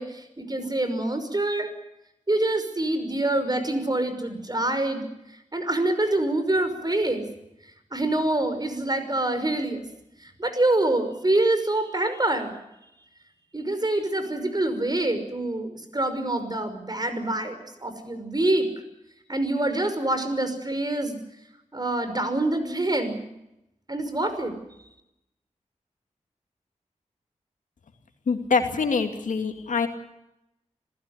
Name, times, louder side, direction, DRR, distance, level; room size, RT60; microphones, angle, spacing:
voice 1, 0.0-1.7 2.3-5.1 5.5-7.3 7.9-9.8 10.2-12.5 13.5-18.7 19.3-21.2 21.7-23.3 23.9-24.5, right 2 dB, 30° right, 9 dB, 5.8 m, -26 dB
voice 2, 28.3-29.9, left 5 dB, 85° left, 6 dB, 2.5 m, -24 dB
26.5 x 16.0 x 9.9 m, 0.88 s
cardioid pair, 45°, 13 cm